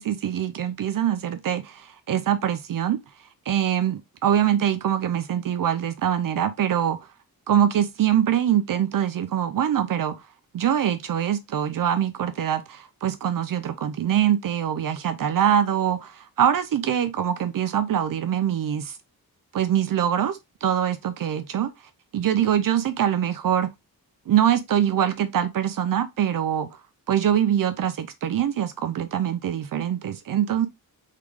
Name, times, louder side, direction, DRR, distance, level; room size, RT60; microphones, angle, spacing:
voice 1, 0.0-3.0 3.5-7.0 7.5-10.1 10.5-19.0 19.5-21.7 22.1-23.7 24.3-26.7 27.1-30.7, right 10 dB, 60° right, 0.6 m, -23 dB
3.7 x 3.6 x 3.2 m
wide cardioid pair, 145°, 37 cm